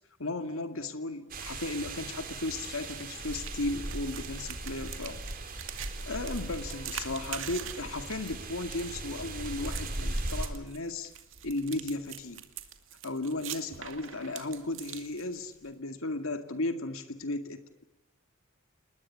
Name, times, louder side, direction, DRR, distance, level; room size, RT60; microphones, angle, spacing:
voice 1, 0.2-5.2 6.1-11.1 11.4-12.4 13.0-17.8, left 2 dB, 85° left, 8 dB, 2.2 m, -35 dB
sound 1, 1.3-10.5, right 2 dB, 45° right, 3.9 m, -38 dB
sound 2, 3.3-15.7, right 10 dB, 65° right, 2.4 m, -44 dB
28.5 x 21.0 x 8.5 m, 0.93 s
head